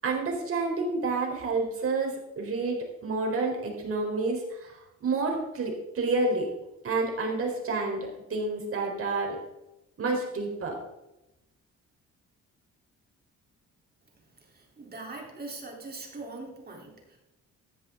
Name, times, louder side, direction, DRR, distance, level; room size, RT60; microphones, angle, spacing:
voice 1, 0.0-6.5 6.8-9.4 10.0-10.8, right 3 dB, 50° right, 0 dB, 4.2 m, -29 dB
voice 2, 14.5-17.2, right 3 dB, 30° right, 0 dB, 3.7 m, -42 dB
14.5 x 10.5 x 3.9 m, 0.94 s
cardioid pair, 90°, 30 cm